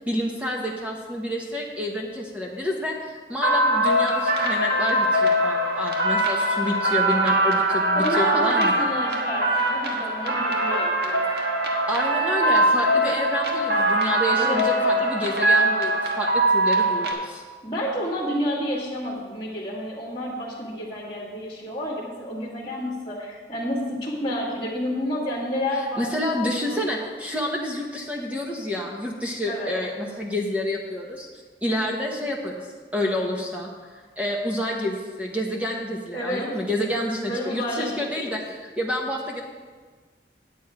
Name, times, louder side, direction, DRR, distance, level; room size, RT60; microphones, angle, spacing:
voice 1, 0.1-8.9 11.9-17.4 26.0-31.3 31.6-32.7 32.9-39.4, left 1 dB, 10° right, -1 dB, 1.0 m, -29 dB
sound 1, 3.4-17.1, right 1 dB, 60° right, 1.4 m, -22 dB
voice 2, 7.9-11.2 14.4-15.2 17.6-26.8 29.5-29.7 36.1-36.5 36.7-36.8 37.3-38.3, equal, 30° left, -9 dB, 1.8 m, -30 dB
9.3 x 9.1 x 4.8 m, 1.4 s
head